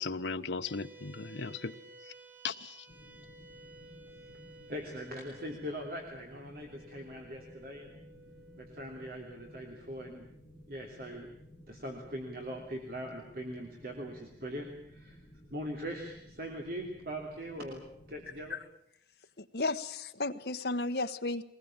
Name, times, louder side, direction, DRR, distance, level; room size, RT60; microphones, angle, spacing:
voice 1, 0.0-1.7 2.4-2.8, left 4 dB, 85° left, 1.0 m, -36 dB
sound 1, 0.6-13.3, right 1 dB, 85° right, 7.7 m, -56 dB
sound 2, 2.9-18.5, equal, 20° left, 3.6 m, -56 dB
voice 2, 4.7-7.9 8.6-10.3 10.7-11.3 11.7-15.2 15.5-17.8 18.1-18.6, equal, 55° right, 3.1 m, -41 dB
voice 3, 19.4-21.4, left 3 dB, 65° left, 1.2 m, -33 dB
23.0 x 20.0 x 8.9 m
head